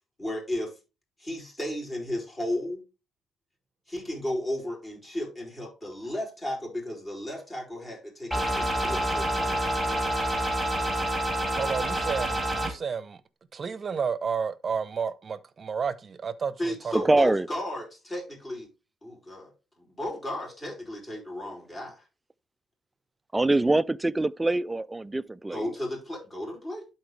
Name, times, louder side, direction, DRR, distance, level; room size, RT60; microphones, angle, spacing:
voice 1, 0.2-0.7 1.2-2.8 3.9-10.2 16.6-18.7 19.0-22.0 25.5-26.9, left 1 dB, 25° left, 5.1 m, -34 dB
sound 1, 8.3-12.7, right 1 dB, ahead, 3.6 m, -27 dB
voice 2, 11.5-13.2 13.5-17.3, right 6 dB, 40° right, 0.8 m, -31 dB
voice 3, 17.0-17.5 23.3-25.7, right 2 dB, 15° right, 0.4 m, -24 dB
11.5 x 4.5 x 3.3 m
cardioid pair, 90°, 0 cm